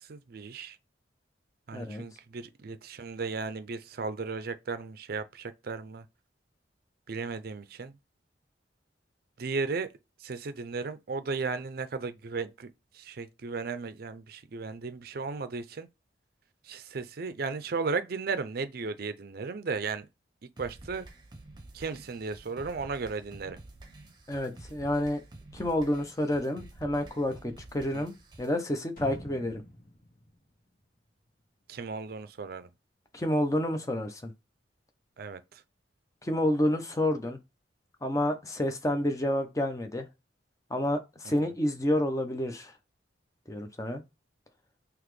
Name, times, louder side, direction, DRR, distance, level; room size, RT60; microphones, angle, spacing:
voice 1, 0.0-0.8 1.7-6.1 7.1-7.9 9.4-9.9 10.2-15.9 16.6-20.1 20.6-21.1 21.7-23.6 27.9-28.1 31.7-32.7 35.2-35.6 41.2-41.5, right 4 dB, 55° right, 0.5 m, -35 dB
voice 2, 1.7-2.0 24.3-25.2 25.5-29.6 33.1-34.3 36.2-37.4 38.0-40.0 40.7-42.7 43.5-44.0, left 1 dB, 20° left, 0.6 m, -29 dB
sound 1, 20.6-28.6, right 2 dB, 25° right, 0.8 m, -50 dB
sound 2, 29.0-31.8 32.1-32.2, equal, 50° left, 1.9 m, -47 dB
4.0 x 3.0 x 3.1 m
head